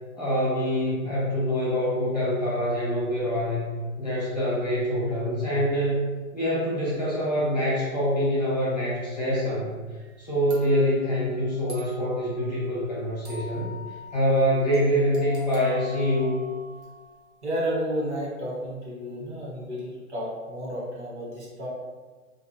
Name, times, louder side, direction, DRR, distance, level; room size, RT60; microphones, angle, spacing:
voice 1, 0.1-3.7 4.0-6.0 6.3-9.7 10.2-13.7 14.1-16.4, equal, 30° left, -8 dB, 0.5 m, -25 dB
sound 1, 10.0-10.1 10.5-17.3, left 2 dB, 75° right, 1.1 m, -44 dB
voice 2, 17.4-21.7, equal, 55° right, -5 dB, 1.2 m, -31 dB
2.4 x 2.4 x 2.8 m, 1.4 s
hypercardioid pair, 170°, 42 cm